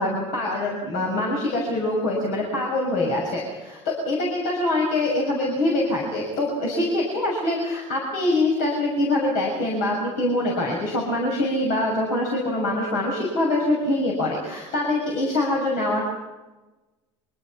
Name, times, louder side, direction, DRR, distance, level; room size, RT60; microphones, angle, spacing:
voice 1, 0.0-3.8 4.0-16.0, left 1 dB, 65° left, -2 dB, 6.9 m, -24 dB
25.5 x 24.5 x 6.0 m, 1.2 s
hypercardioid pair, 75°, 15 cm